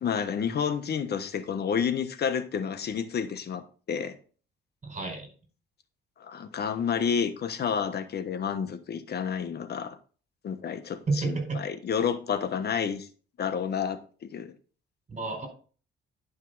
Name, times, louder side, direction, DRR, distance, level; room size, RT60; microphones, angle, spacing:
voice 1, 0.0-4.1 6.2-10.0 10.4-13.1 13.4-14.5, left 7 dB, 50° left, 9 dB, 1.2 m, -30 dB
voice 2, 4.8-5.3 11.1-11.6 15.1-15.5, right 3 dB, 35° right, 3 dB, 5.0 m, -30 dB
10.5 x 5.5 x 4.0 m, 0.40 s
cardioid pair, 95°, 21 cm